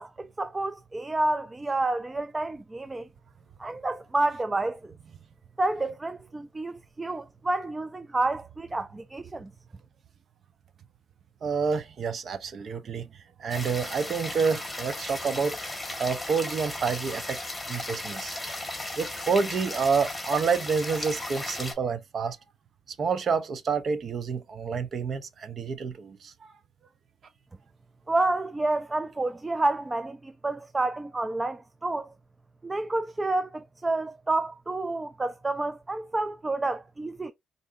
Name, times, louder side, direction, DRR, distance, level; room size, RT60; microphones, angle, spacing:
voice 1, 0.0-3.1 3.6-4.9 5.6-9.5 28.1-32.1 32.6-37.3, right 2 dB, 20° right, 0.3 m, -29 dB
voice 2, 11.4-13.1 13.4-15.6 16.0-17.4 17.7-18.7 18.9-22.4 23.0-26.3, right 5 dB, 50° right, 0.7 m, -28 dB
sound 1, 13.5-21.7, left 2 dB, 10° left, 1.6 m, -36 dB
4.6 x 2.6 x 2.6 m
cardioid pair, 90°, 0 cm